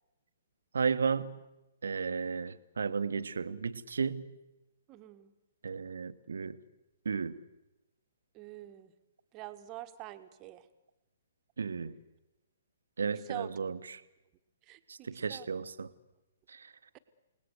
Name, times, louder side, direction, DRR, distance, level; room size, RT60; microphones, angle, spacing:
voice 1, 0.7-1.4 1.8-4.3 5.6-6.6 7.0-7.4 11.6-11.9 13.0-14.0 14.9-15.9 16.5-16.7, right 5 dB, 65° right, 13 dB, 1.3 m, -34 dB
voice 2, 4.9-5.3 8.3-8.9 9.3-10.6 13.0-13.5 14.7-15.5, right 16 dB, 25° right, 9 dB, 1.6 m, -45 dB
29.0 x 19.5 x 8.1 m, 0.99 s
figure-of-eight pair, 125°, 0 cm